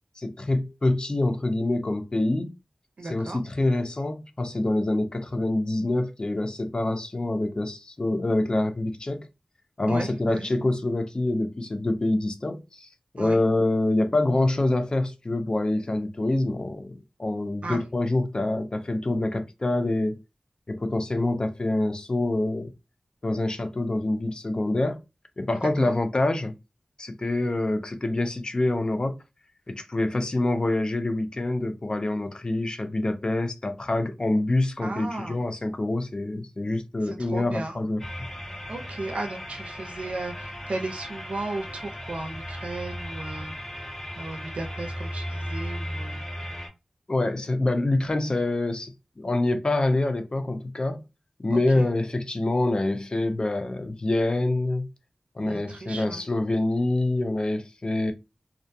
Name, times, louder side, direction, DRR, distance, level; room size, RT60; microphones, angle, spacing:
voice 1, 0.2-2.5 3.0-9.3 9.8-12.9 13.1-20.2 20.7-22.7 23.2-25.0 25.4-26.5 27.0-29.2 29.7-38.0 47.1-51.0 51.4-54.9 55.4-58.1, left 2 dB, 45° left, 0.5 m, -26 dB
voice 2, 3.0-3.4 9.9-10.5 13.2-13.4 17.6-17.8 34.8-35.4 37.0-37.8 38.7-43.5 44.2-46.2 51.5-51.9 55.4-56.2, right 2 dB, 85° right, 0.5 m, -35 dB
sound 1, 38.0-46.7, equal, 15° left, 1.2 m, -36 dB
2.4 x 2.2 x 2.6 m
cardioid pair, 40°, 2 cm